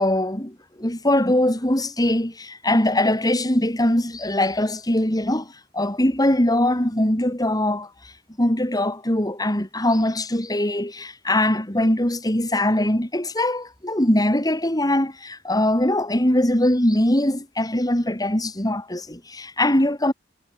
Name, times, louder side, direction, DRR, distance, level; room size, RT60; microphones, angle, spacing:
voice 1, 0.0-7.9 8.4-20.1, left 1 dB, 20° left, 3.7 m, -22 dB
head